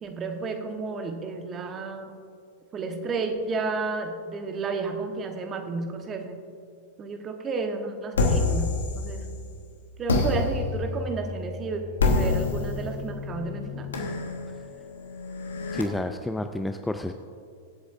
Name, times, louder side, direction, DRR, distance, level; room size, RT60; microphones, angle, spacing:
voice 1, 0.0-2.1 2.7-6.4 7.0-9.3 10.0-11.8 12.1-13.9, right 4 dB, 25° right, 5 dB, 1.2 m, -32 dB
sound 1, 8.1-9.5 10.1-15.8, left 3 dB, 70° left, 1.4 m, -28 dB
voice 2, 15.7-17.1, left 1 dB, 5° left, 7 dB, 0.4 m, -29 dB
23.5 x 8.0 x 2.6 m, 2.3 s
figure-of-eight pair, 95°, 0 cm